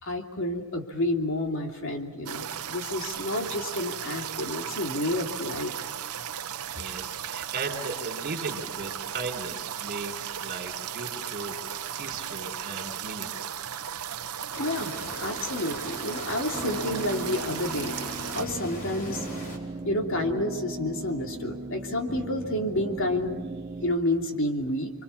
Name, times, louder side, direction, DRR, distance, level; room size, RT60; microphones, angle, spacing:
voice 1, 0.0-5.7 14.6-14.9 15.2-18.0 18.3-19.2 19.8-23.4 23.8-24.9, left 1 dB, 65° left, 3 dB, 3.1 m, -29 dB
sound 1, 2.3-18.5, right 9 dB, 85° right, 0.8 m, -36 dB
voice 2, 6.7-13.5, right 3 dB, 45° right, 4 dB, 4.0 m, -37 dB
sound 2, 14.5-19.6, left 1 dB, 40° left, 5.3 m, -40 dB
sound 3, 16.5-23.9, right 2 dB, 25° right, 1.0 m, -37 dB
30.0 x 24.5 x 7.2 m, 1.2 s
head